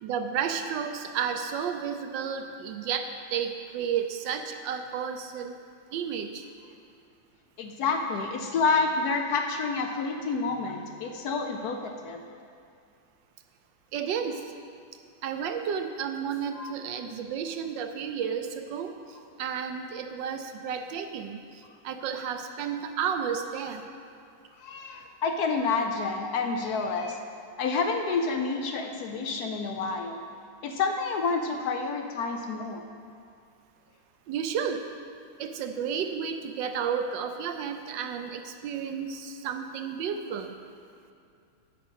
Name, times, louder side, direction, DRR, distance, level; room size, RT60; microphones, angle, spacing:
voice 1, 0.0-5.6 5.9-6.5 13.9-14.4 15.2-23.8 34.3-34.9 35.4-40.5, right 7 dB, 70° right, 7 dB, 1.2 m, -32 dB
voice 2, 7.6-12.2 16.6-16.7 24.6-27.2 27.6-30.2 30.6-32.8, left 4 dB, 70° left, 5 dB, 0.9 m, -29 dB
9.9 x 5.1 x 8.0 m, 2.4 s
omnidirectional pair, 2.3 m